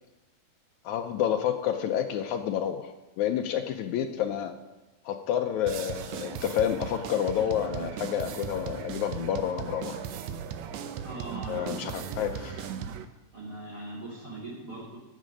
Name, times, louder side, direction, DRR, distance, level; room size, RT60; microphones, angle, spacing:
voice 1, 0.9-4.5 5.1-10.0 11.5-12.7, left 10 dB, 80° left, 6 dB, 1.7 m, -29 dB
sound 1, 5.7-13.1, right 8 dB, 85° right, 1.5 m, -37 dB
voice 2, 11.0-12.4 13.3-15.0, right 2 dB, 30° right, -5 dB, 2.8 m, -41 dB
15.0 x 7.5 x 5.1 m, 1.1 s
omnidirectional pair, 4.0 m